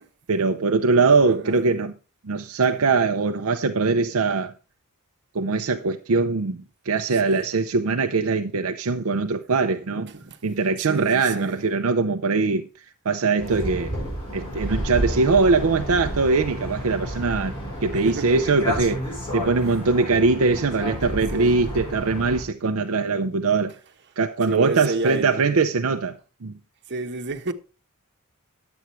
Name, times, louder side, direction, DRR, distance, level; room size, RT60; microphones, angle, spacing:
voice 1, 0.3-1.9 2.2-4.5 5.3-10.1 10.4-12.6 13.1-13.9 14.3-17.5 17.8-23.7 24.2-26.5, right 4 dB, 70° right, 0.6 m, -22 dB
voice 2, 1.2-1.6 7.1-7.5 10.0-10.4 10.9-11.6 17.9-18.4 19.6-19.8 21.3-21.6 24.4-25.5 26.9-27.5, right 3 dB, 50° right, 1.1 m, -31 dB
sound 1, 13.4-22.4, equal, 25° left, 7.5 m, -31 dB
11.0 x 7.9 x 4.4 m
head